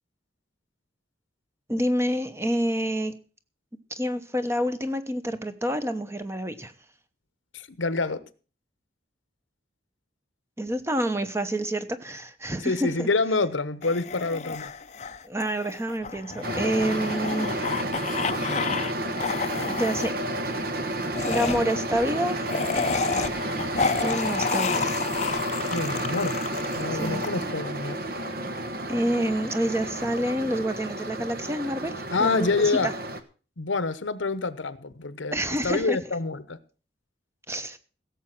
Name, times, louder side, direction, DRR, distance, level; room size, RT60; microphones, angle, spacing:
voice 1, 1.7-3.1 3.9-6.7 10.6-13.1 15.2-17.6 19.6-20.2 21.3-22.5 24.0-25.0 26.9-27.2 28.9-32.9 35.3-36.0 37.5-37.8, equal, 15° right, 0.9 m, -28 dB
voice 2, 7.5-8.2 12.6-14.7 25.7-26.4 26.7-28.0 32.1-32.9 33.6-35.4 35.6-36.6, left 3 dB, 85° left, 1.0 m, -27 dB
sound 1, 13.8-18.9 19.2-20.1 21.1-27.3, left 5 dB, 35° left, 0.6 m, -30 dB
sound 2, 16.4-33.2, right 1 dB, 50° right, 1.2 m, -31 dB
16.5 x 7.3 x 6.0 m
head